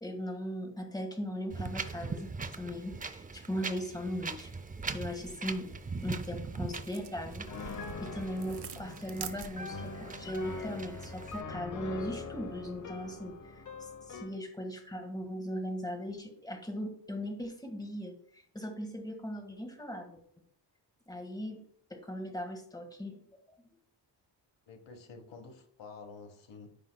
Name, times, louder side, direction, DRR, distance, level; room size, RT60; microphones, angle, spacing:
voice 1, 0.0-4.5 4.9-5.7 6.0-20.2 21.1-21.6 21.9-23.2, equal, 10° left, 4 dB, 1.6 m, -39 dB
Wind, 1.5-11.4, right 4 dB, 20° right, 0.5 m, -41 dB
sound 1, 3.8-9.9, right 7 dB, 65° right, 0.8 m, -49 dB
voice 2, 5.7-6.0 24.7-26.8, left 4 dB, 80° left, 6 dB, 1.3 m, -50 dB
Piano, 7.5-14.4, left 4 dB, 45° left, 0.9 m, -43 dB
13.5 x 5.3 x 2.2 m, 0.65 s
wide cardioid pair, 115°, 43 cm